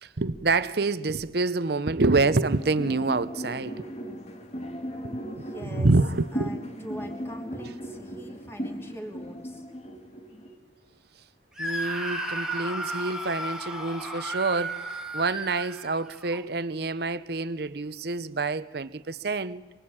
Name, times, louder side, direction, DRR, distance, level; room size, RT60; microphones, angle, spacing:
voice 1, 0.0-3.8 5.0-6.6 11.6-14.8 15.1-19.6, right 3 dB, 60° right, 0.8 m, -27 dB
sound 1, 2.5-10.6, equal, 35° left, 2.2 m, -37 dB
voice 2, 5.3-5.9 6.3-9.6, equal, 15° left, 2.9 m, -42 dB
Screaming, 11.6-16.4, right 1 dB, 5° right, 1.9 m, -33 dB
25.5 x 23.5 x 8.8 m
head